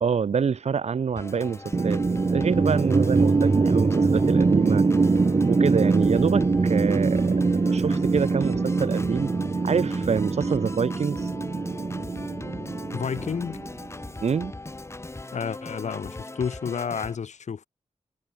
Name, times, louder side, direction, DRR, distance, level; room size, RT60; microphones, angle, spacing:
voice 1, 0.0-2.0 2.3-4.8 5.5-7.3 7.6-9.3 9.6-11.2 14.2-14.5, right 6 dB, 65° right, 1.2 m, -26 dB
Organ, 1.2-17.2, left 2 dB, 25° left, 4.8 m, -40 dB
sound 1, 1.7-13.9, right 4 dB, 40° right, 2.7 m, -23 dB
voice 2, 12.9-13.6 15.3-17.7, left 6 dB, 80° left, 2.3 m, -31 dB
wide cardioid pair, 125°, 12 cm